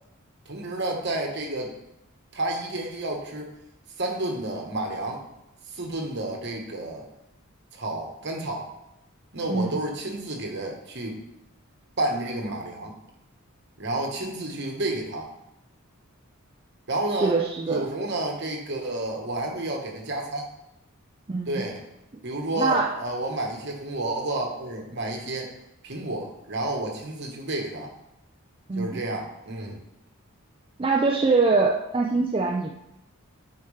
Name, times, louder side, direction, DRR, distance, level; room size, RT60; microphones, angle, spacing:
voice 1, 0.4-1.7 2.3-3.5 4.0-5.2 5.7-7.0 7.7-8.7 9.3-11.2 12.0-12.9 13.8-15.3 16.9-17.4 17.7-20.4 21.5-21.8 22.2-25.5 25.8-27.9 28.8-29.8, right 1 dB, 50° right, 1 dB, 1.3 m, -30 dB
voice 2, 17.2-17.9 21.3-21.6 22.6-23.0 28.7-29.0 30.8-32.7, right 3 dB, 25° right, -1 dB, 0.4 m, -23 dB
9.1 x 4.5 x 3.3 m, 0.85 s
head